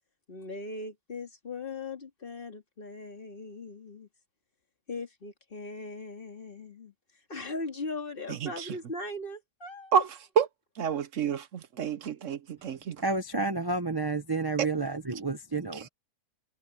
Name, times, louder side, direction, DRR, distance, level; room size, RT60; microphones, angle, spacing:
voice 1, 0.3-4.1 4.9-6.9 7.3-9.9, left 2 dB, 35° left, 2.4 m, -39 dB
voice 2, 8.3-8.8 9.9-10.5 10.7-13.0 14.6-14.7 15.7-15.9, right 7 dB, 60° right, 1.1 m, -29 dB
voice 3, 13.0-15.9, right 3 dB, 20° right, 0.9 m, -30 dB
omnidirectional pair, 1.5 m